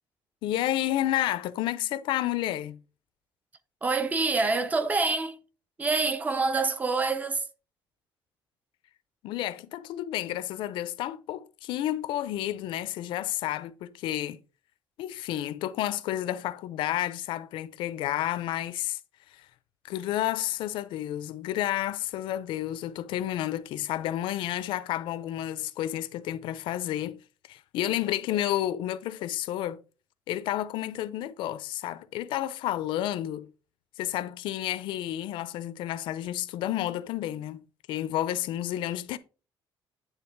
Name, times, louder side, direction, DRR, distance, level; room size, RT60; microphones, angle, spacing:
voice 1, 0.4-2.8 9.2-14.4 15.0-19.0 19.3-19.4 19.8-27.2 27.5-29.8 30.3-33.5 34.0-37.6 37.9-39.2, left 13 dB, 80° left, 0.6 m, -31 dB
voice 2, 3.8-5.4 5.8-7.4, right 3 dB, 20° right, 0.5 m, -26 dB
9.0 x 3.3 x 4.5 m
cardioid pair, 170°, 8 cm